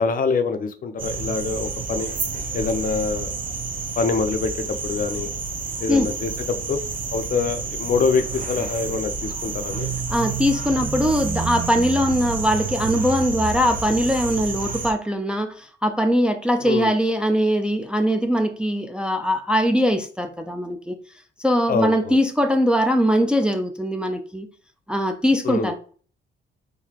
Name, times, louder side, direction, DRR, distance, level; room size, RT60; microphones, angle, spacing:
voice 1, 0.0-2.1 2.5-3.3 4.0-5.3 5.8-6.3 6.7-6.8 7.1-9.9 16.6-16.9 21.7-22.2 25.4-25.7, left 4 dB, 45° left, 0.6 m, -25 dB
sound 1, 1.0-14.9, right 5 dB, 45° right, 0.7 m, -29 dB
voice 2, 10.1-21.0 21.4-24.5 24.9-25.7, equal, 5° right, 0.4 m, -21 dB
3.9 x 2.6 x 2.9 m
cardioid pair, 90°, 20 cm